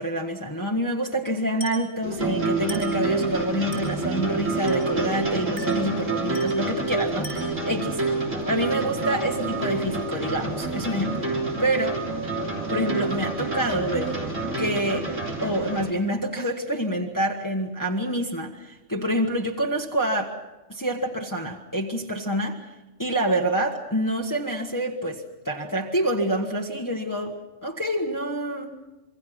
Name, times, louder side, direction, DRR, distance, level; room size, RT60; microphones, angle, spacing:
voice 1, 0.0-8.0 8.4-11.3 11.6-12.0 12.7-14.1 14.6-15.1 15.4-20.3 20.7-22.7 23.0-28.8, right 1 dB, 15° left, -1 dB, 1.5 m, -27 dB
Glass, 1.6-1.9 2.7-3.0 3.7-4.0 4.7-5.0 5.6-5.9 6.3-6.7 7.2-7.6, right 1 dB, 55° right, 8.2 m, -40 dB
sound 1, 2.0-15.9, right 3 dB, 90° right, 3.8 m, -28 dB
26.5 x 24.0 x 5.9 m, 1.1 s
omnidirectional pair, 1.3 m